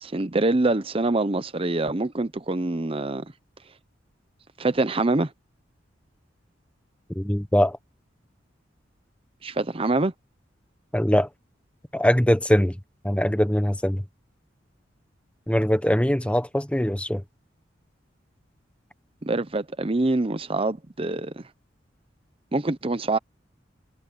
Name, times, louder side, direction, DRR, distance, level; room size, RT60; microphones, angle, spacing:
voice 1, 0.0-3.3 4.6-5.3 9.4-10.1 19.2-21.4 22.5-23.2, right 2 dB, 30° right, 0.8 m, -25 dB
voice 2, 7.1-7.8 10.9-11.3 11.9-12.8 13.0-14.0 15.5-17.2, equal, 5° left, 1.1 m, -22 dB
head